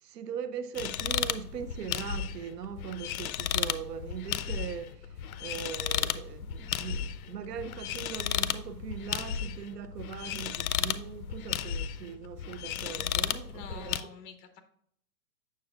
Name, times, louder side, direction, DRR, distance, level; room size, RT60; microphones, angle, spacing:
voice 1, 0.0-13.9, right 8 dB, 75° right, 0.8 m, -40 dB
sound 1, 0.7-14.0, left 10 dB, 60° left, 0.6 m, -34 dB
voice 2, 12.8-14.6, left 5 dB, 35° left, 1.0 m, -48 dB
7.5 x 6.9 x 2.4 m
hypercardioid pair, 145°, 49 cm